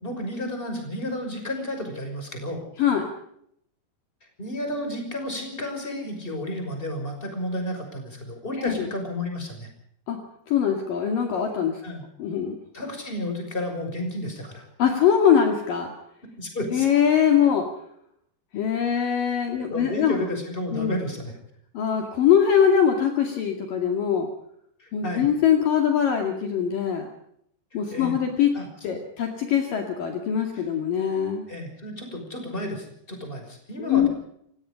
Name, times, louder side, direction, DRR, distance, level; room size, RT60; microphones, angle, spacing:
voice 1, 0.0-2.6 4.4-9.7 11.8-12.0 12.7-14.7 16.4-16.9 19.7-21.3 24.8-25.3 27.9-28.2 28.5-29.0 30.5-30.6 31.5-34.1, left 1 dB, 10° left, 5 dB, 6.0 m, -32 dB
voice 2, 10.5-11.8 12.2-12.6 14.8-15.9 16.7-17.7 18.5-20.2 20.7-21.0 21.7-24.3 24.9-27.1 27.7-28.5 28.8-31.5 33.8-34.1, left 8 dB, 60° left, 4 dB, 3.7 m, -22 dB
29.5 x 17.5 x 5.2 m, 0.71 s
omnidirectional pair, 4.7 m